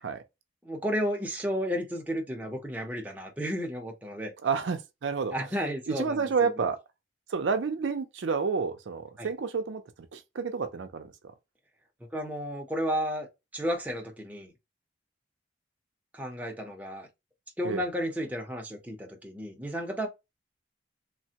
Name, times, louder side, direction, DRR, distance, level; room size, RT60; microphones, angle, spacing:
voice 1, 0.6-4.3 5.3-6.5 9.2-9.3 12.1-13.3 13.5-14.5 16.1-17.1 17.6-20.1, equal, 10° right, 0.6 m, -32 dB
voice 2, 4.4-5.3 5.9-6.8 7.3-9.8 10.1-11.1 17.6-17.8, right 5 dB, 70° right, 0.4 m, -29 dB
3.2 x 2.1 x 2.8 m
head